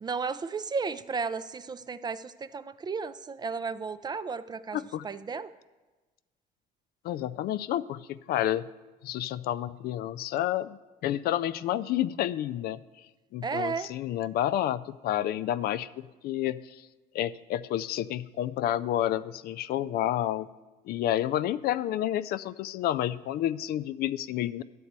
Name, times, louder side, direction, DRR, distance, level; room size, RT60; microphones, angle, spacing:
voice 1, 0.0-5.5 13.4-13.9, right 5 dB, 25° right, 14 dB, 0.3 m, -34 dB
voice 2, 4.7-5.1 7.0-8.7 9.0-12.8 13.3-15.9 16.2-16.8 17.1-20.5 20.9-24.6, left 12 dB, 65° left, 15 dB, 0.4 m, -30 dB
11.0 x 4.2 x 8.0 m, 1.2 s
cardioid pair, 110°, 17 cm